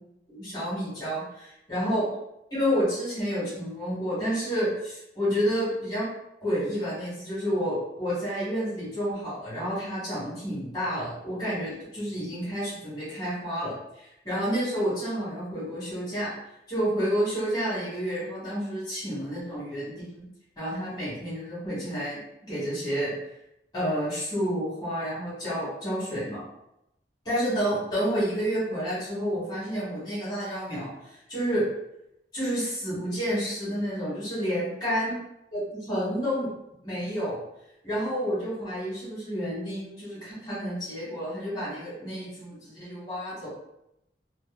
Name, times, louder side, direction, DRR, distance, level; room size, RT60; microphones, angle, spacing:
voice 1, 0.3-2.1 2.5-6.1 6.4-16.3 16.7-20.2 20.6-22.2 22.5-23.1 23.7-26.4 27.2-31.6 32.3-35.1 35.5-36.5 36.8-37.4 37.8-43.5, equal, 25° left, -10 dB, 1.1 m, -30 dB
2.6 x 2.1 x 2.3 m, 0.84 s
head